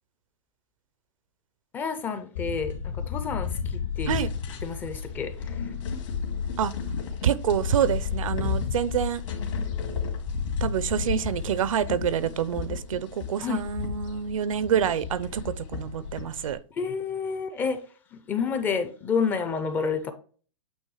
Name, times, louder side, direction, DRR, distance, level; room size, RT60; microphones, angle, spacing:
voice 1, 1.7-2.7 3.1-4.2 4.6-5.3 13.4-13.6 16.8-17.8 18.3-20.1, left 5 dB, 10° left, 0.4 m, -29 dB
sound 1, 2.3-16.5, left 6 dB, 70° left, 2.1 m, -32 dB
voice 2, 7.2-9.2 10.6-16.6, right 9 dB, 80° right, 0.6 m, -27 dB
8.8 x 3.0 x 4.8 m
hypercardioid pair, 160°, 17 cm